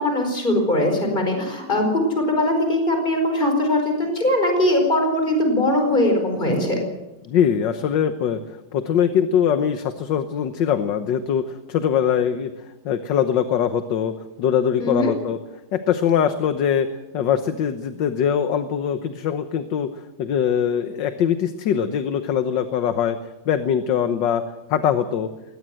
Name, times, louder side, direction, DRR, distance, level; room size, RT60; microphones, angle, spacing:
voice 1, 0.0-6.8 14.8-15.1, left 1 dB, 20° left, 4 dB, 4.9 m, -21 dB
voice 2, 7.3-14.1 14.4-15.4 15.7-16.9 17.1-19.9 20.2-23.2 23.5-24.4 24.7-25.3, left 8 dB, 65° left, 9 dB, 1.6 m, -22 dB
21.5 x 18.0 x 7.7 m, 1.0 s
omnidirectional pair, 2.2 m